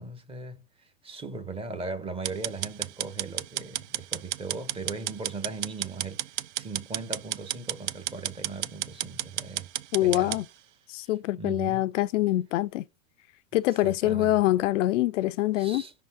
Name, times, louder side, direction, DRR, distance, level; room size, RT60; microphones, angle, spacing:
voice 1, 0.0-9.7 10.0-10.4 11.0-11.1 11.4-11.9 13.8-14.4 15.6-15.9, right 3 dB, 15° right, 0.8 m, -38 dB
sound 1, 2.2-10.4, right 14 dB, 60° right, 0.6 m, -33 dB
voice 2, 9.9-10.4 10.9-12.8 13.5-15.8, left 15 dB, 65° left, 0.5 m, -25 dB
5.5 x 3.7 x 5.6 m
hypercardioid pair, 130°, 40 cm